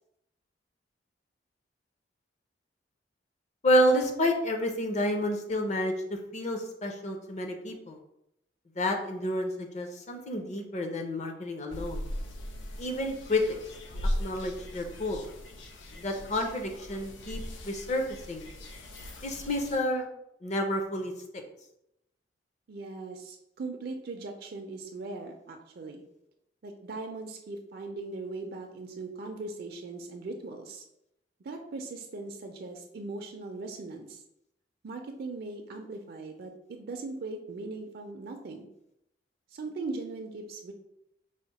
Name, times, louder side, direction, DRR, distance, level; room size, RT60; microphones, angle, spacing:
voice 1, 3.6-8.0 8.8-12.0 12.8-13.4 14.2-15.2 16.0-18.5 19.2-20.1 20.4-21.1, left 1 dB, 40° left, 4 dB, 0.6 m, -29 dB
sound 1, 11.7-19.8, equal, 85° left, 0.6 m, -38 dB
voice 2, 22.7-26.0 26.6-30.8 31.4-34.2 34.8-38.7 39.5-40.7, right 3 dB, 55° right, 4 dB, 0.4 m, -39 dB
4.9 x 2.1 x 4.0 m, 0.82 s
head